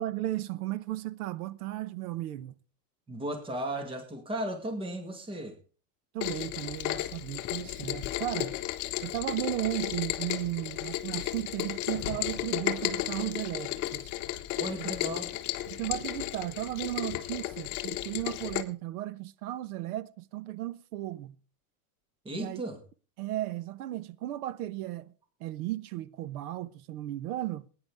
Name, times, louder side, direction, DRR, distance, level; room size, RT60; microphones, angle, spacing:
voice 1, 0.0-2.5 6.1-8.6 9.0-14.1 14.8-14.9 15.7-21.4 22.3-22.6 23.2-25.1 25.4-27.7, right 15 dB, 80° right, 1.1 m, -35 dB
voice 2, 3.1-5.6 14.6-15.4 22.3-22.8, right 1 dB, 10° right, 1.9 m, -35 dB
Rain, 6.2-18.6, left 15 dB, 40° left, 1.3 m, -34 dB
19.0 x 10.0 x 3.5 m
supercardioid pair, 155°, 44 cm